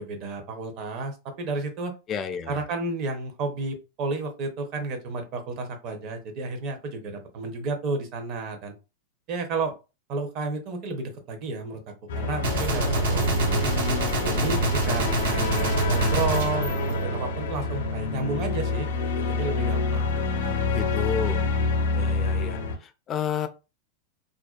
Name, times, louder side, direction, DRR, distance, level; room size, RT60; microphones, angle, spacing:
voice 1, 0.0-1.9 2.5-8.7 9.3-9.8 10.1-11.8 12.1-13.7 14.2-20.1 20.4-20.5, right 3 dB, 40° right, 0.6 m, -32 dB
voice 2, 2.1-2.6 20.7-21.5 21.9-23.5, left 7 dB, 25° left, 0.3 m, -31 dB
sound 1, 12.1-22.8, left 2 dB, 80° left, 0.5 m, -26 dB
Gunshot gunfire, 12.4-17.6, right 1 dB, 80° right, 0.9 m, -28 dB
2.4 x 2.1 x 2.3 m
supercardioid pair, 150°, 0 cm